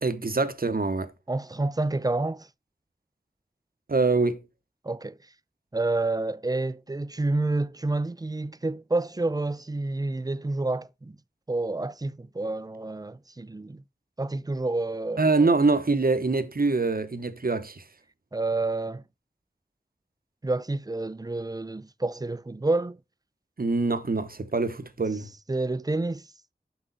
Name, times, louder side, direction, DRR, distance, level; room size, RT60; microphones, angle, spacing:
voice 1, 0.0-1.1 3.9-4.4 15.2-17.8 23.6-25.3, right 3 dB, 65° right, 0.9 m, -24 dB
voice 2, 1.3-2.5 4.8-5.1 5.7-11.2 11.5-13.8 14.2-15.2 18.3-19.0 20.4-23.0 25.5-26.2, right 2 dB, 25° right, 0.4 m, -29 dB
6.6 x 6.1 x 4.0 m
wide cardioid pair, 50°, 16 cm